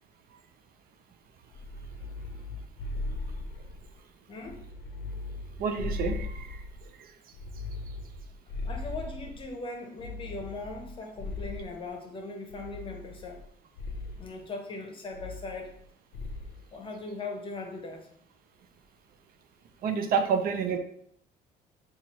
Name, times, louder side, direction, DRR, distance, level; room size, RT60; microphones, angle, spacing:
sound 1, 1.5-4.0 4.4-6.9 7.3-9.5 10.0-11.9 12.5-13.5 13.8-14.3 15.1-15.9 16.1-16.6, left 2 dB, 75° left, 0.5 m, -38 dB
voice 1, 4.3-4.6 8.6-13.4 14.2-15.7 16.7-18.1, left 3 dB, 30° left, 2 dB, 0.7 m, -39 dB
voice 2, 5.6-6.6 19.8-20.8, right 6 dB, 60° right, 7 dB, 0.5 m, -28 dB
4.2 x 2.4 x 3.0 m, 0.65 s
cardioid pair, 110°, 17 cm